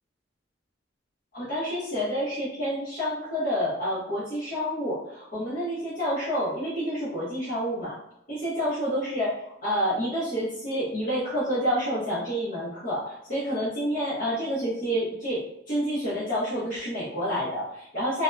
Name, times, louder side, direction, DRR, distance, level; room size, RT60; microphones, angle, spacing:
voice 1, 1.3-8.0 8.3-18.2, equal, 45° left, -10 dB, 0.8 m, -28 dB
2.7 x 2.1 x 2.2 m, 0.76 s
head